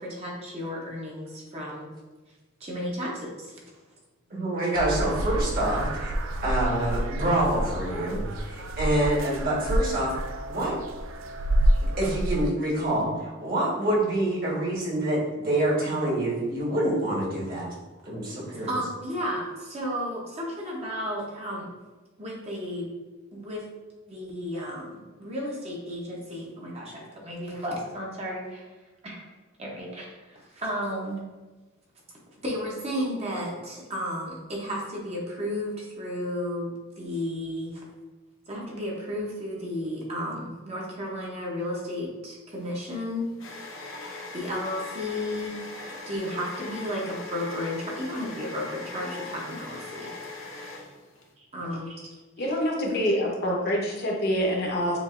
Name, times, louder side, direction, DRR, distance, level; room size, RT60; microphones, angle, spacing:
voice 1, 0.0-1.9 2.6-3.6 18.5-21.7 22.2-22.9 23.3-23.6 24.1-28.7 29.0-29.3 29.6-31.2 32.4-37.8 38.5-43.3 44.3-45.7 46.1-50.1 51.4-52.0, equal, 30° right, -2 dB, 0.8 m, -33 dB
voice 2, 4.3-6.1 6.4-10.1 10.5-10.8 11.8-17.7 18.0-18.7, right 1 dB, 50° right, -4 dB, 1.4 m, -26 dB
sound 1, 4.7-12.5, right 1 dB, 85° right, 0.4 m, -28 dB
sound 2, 42.6-51.3, left 3 dB, 85° left, 0.8 m, -40 dB
voice 3, 52.4-55.0, equal, 50° left, -2 dB, 0.9 m, -26 dB
6.9 x 2.5 x 2.5 m, 1.3 s
head